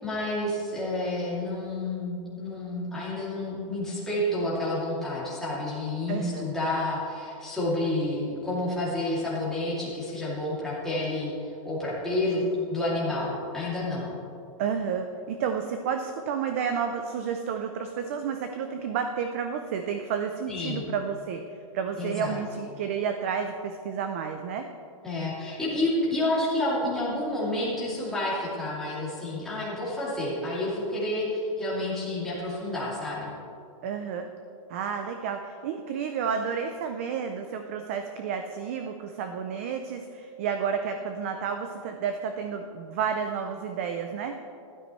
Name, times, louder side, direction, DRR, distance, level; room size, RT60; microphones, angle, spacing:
voice 1, 0.0-11.3 11.6-12.4 12.7-14.1 20.5-20.8 22.0-22.4 25.0-33.3, left 1 dB, 5° left, -9 dB, 2.5 m, -29 dB
voice 2, 6.1-6.5 12.4-12.7 14.6-24.7 33.8-34.3 34.7-44.3, right 7 dB, 25° right, 6 dB, 0.4 m, -31 dB
15.0 x 12.0 x 3.1 m, 2.6 s
supercardioid pair, 180°, 17 cm